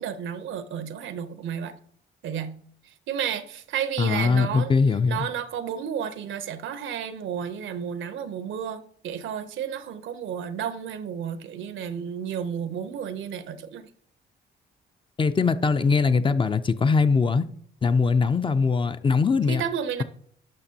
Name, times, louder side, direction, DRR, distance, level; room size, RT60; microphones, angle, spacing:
voice 1, 0.0-1.8 2.2-4.8 5.1-13.9 19.5-20.0, right 8 dB, 75° right, 0.7 m, -32 dB
voice 2, 4.0-5.3 15.2-17.4 17.8-19.6, left 4 dB, 25° left, 0.4 m, -21 dB
12.0 x 6.0 x 2.8 m
cardioid pair, 90°, 20 cm